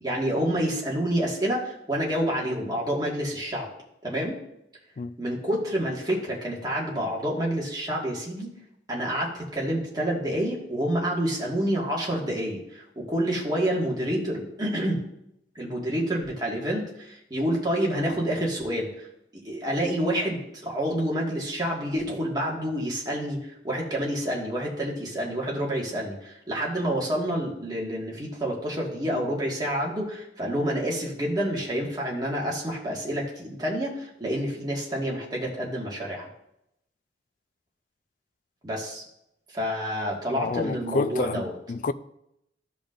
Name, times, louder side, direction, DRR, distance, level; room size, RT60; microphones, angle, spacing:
voice 1, 0.0-3.7 4.0-4.4 5.2-8.5 8.9-15.0 15.6-19.1 19.3-36.3 38.6-39.0 39.5-41.5, equal, 25° right, 1.8 m, -28 dB
voice 2, 40.4-41.9, left 4 dB, 50° left, 0.4 m, -29 dB
14.5 x 5.2 x 2.6 m
head